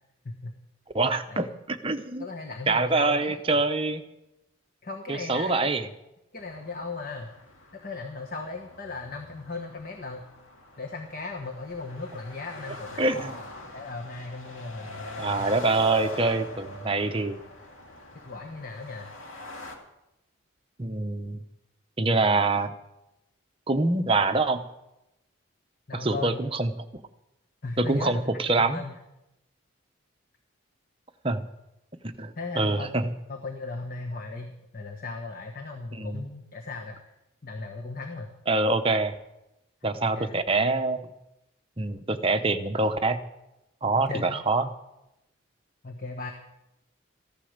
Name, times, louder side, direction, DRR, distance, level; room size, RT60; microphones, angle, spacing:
voice 1, 0.9-2.3 2.7-4.0 5.1-5.9 13.0-13.4 15.2-17.4 20.8-21.4 22.0-22.7 23.7-24.7 25.9-26.7 27.8-28.8 31.2-31.5 32.2-33.1 35.9-36.2 38.5-39.1 39.8-41.1 41.8-43.2 43.8-44.7, right 3 dB, 25° right, 7 dB, 0.8 m, -25 dB
voice 2, 2.2-3.3 4.8-5.6 6.3-7.3 7.7-10.2 10.8-13.1 13.7-15.5 18.2-19.1 25.9-26.4 27.6-28.2 28.6-28.9 32.4-32.9 33.3-37.0 37.4-38.3 40.0-40.3 43.9-44.4 45.8-46.3, left 3 dB, 45° left, 3 dB, 1.2 m, -37 dB
sound 1, 6.4-19.8, left 1 dB, 70° left, 2.3 m, -43 dB
15.0 x 11.0 x 6.6 m, 0.91 s
head